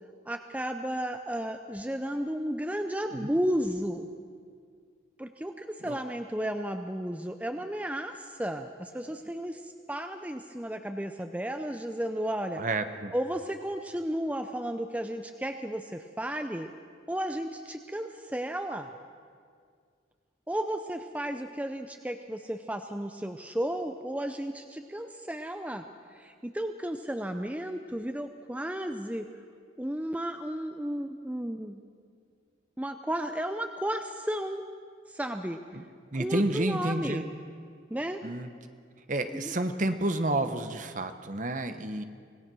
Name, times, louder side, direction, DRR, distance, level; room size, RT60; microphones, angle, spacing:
voice 1, 0.3-4.1 5.2-12.6 13.1-16.7 17.1-18.9 20.5-25.8 26.1-29.3 29.8-31.8 32.8-34.6 35.1-35.6 36.2-37.3 37.9-38.2 39.3-39.6, right 1 dB, 10° right, 7 dB, 0.6 m, -33 dB
voice 2, 12.6-13.1 35.7-35.8 36.1-37.3 38.2-38.5 39.1-42.0, right 2 dB, 40° right, 9 dB, 1.1 m, -30 dB
25.5 x 18.0 x 6.2 m, 2.1 s
head